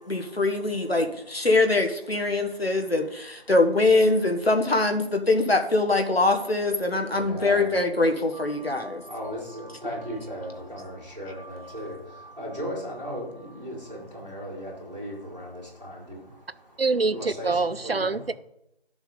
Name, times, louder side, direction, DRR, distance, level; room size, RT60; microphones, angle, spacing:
voice 1, 0.1-9.0, left 2 dB, 70° left, 4 dB, 1.5 m, -23 dB
voice 2, 7.2-7.7 8.3-12.0 12.4-16.2 17.1-18.2, equal, 40° right, -4 dB, 4.2 m, -36 dB
voice 3, 16.8-18.3, right 3 dB, 70° right, 17 dB, 0.6 m, -25 dB
11.0 x 7.0 x 3.9 m, 0.80 s
figure-of-eight pair, 175°, 32 cm